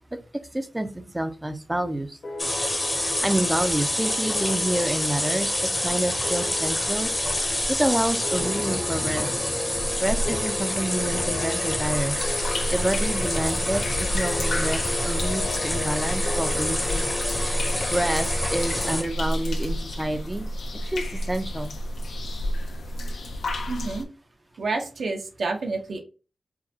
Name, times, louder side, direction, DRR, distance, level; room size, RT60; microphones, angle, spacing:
voice 1, 0.5-2.2 3.2-7.1 7.7-9.3 10.0-12.2 12.7-17.0 17.9-20.5 20.8-21.7, right 1 dB, 10° right, 8 dB, 0.4 m, -28 dB
sound 1, 2.2-19.3, left 3 dB, 50° left, 0.8 m, -39 dB
sound 2, 2.4-19.0, left 1 dB, 20° left, 0.7 m, -27 dB
sound 3, 12.1-24.0, equal, 90° left, 0.6 m, -30 dB
voice 2, 23.7-24.1 24.6-26.0, right 3 dB, 65° right, 3 dB, 0.7 m, -29 dB
4.6 x 2.2 x 2.7 m, 0.34 s
wide cardioid pair, 160°, 0 cm